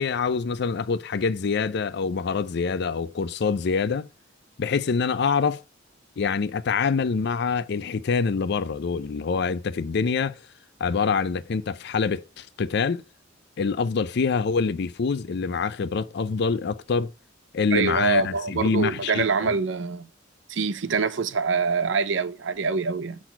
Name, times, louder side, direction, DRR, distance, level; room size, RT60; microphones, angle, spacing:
voice 1, 0.0-4.1 4.6-5.6 6.2-10.4 10.8-13.0 13.6-17.1 17.5-19.5, left 5 dB, 60° left, 0.4 m, -25 dB
voice 2, 17.7-20.1 20.5-23.2, right 4 dB, 70° right, 0.6 m, -25 dB
6.2 x 4.0 x 4.4 m
head